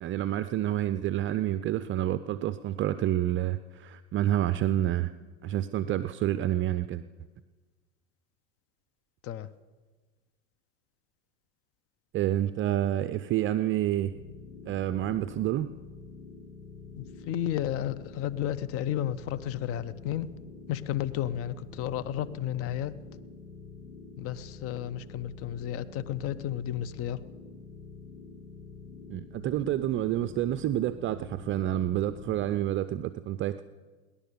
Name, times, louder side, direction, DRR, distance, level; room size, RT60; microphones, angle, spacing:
voice 1, 0.0-5.1 5.4-7.0 12.1-14.1 14.7-15.7 29.1-33.6, right 12 dB, 35° right, 12 dB, 0.5 m, -28 dB
sound 1, 14.0-32.6, left 4 dB, 75° left, 2.4 m, -47 dB
voice 2, 17.0-20.3 20.7-22.9 24.2-27.2, left 11 dB, 40° left, 16 dB, 0.7 m, -32 dB
18.0 x 11.5 x 6.8 m, 1.4 s
supercardioid pair, 110°, 34 cm